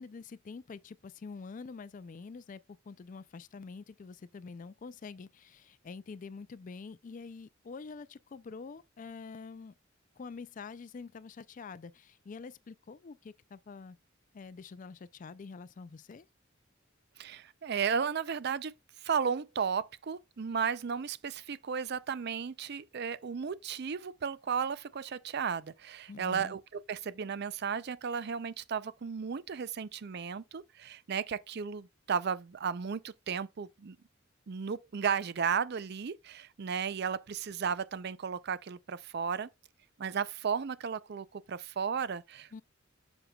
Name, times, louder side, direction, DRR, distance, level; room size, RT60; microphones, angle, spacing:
voice 1, 0.0-2.6 2.9-9.7 10.2-14.0 14.3-16.3 26.1-26.6 42.5-42.6, left 4 dB, 40° left, 0.4 m, -46 dB
voice 2, 17.2-18.7 19.0-26.6 26.9-34.0 34.5-39.5 40.0-42.5, right 6 dB, 55° right, 0.5 m, -34 dB
7.9 x 6.2 x 2.3 m
head